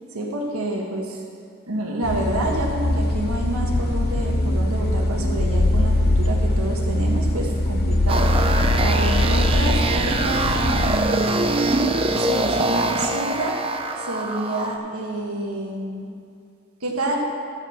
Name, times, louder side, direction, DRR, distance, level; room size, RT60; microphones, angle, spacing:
voice 1, 0.1-1.2 1.7-11.6 12.2-13.6 14.0-16.1 16.8-17.2, right 1 dB, 90° right, 0 dB, 1.4 m, -28 dB
sound 1, 2.0-11.0, left 1 dB, 45° left, 0.7 m, -22 dB
sound 2, 8.1-14.8, right 2 dB, 25° right, 0.5 m, -23 dB
12.5 x 4.7 x 7.1 m, 2.4 s
head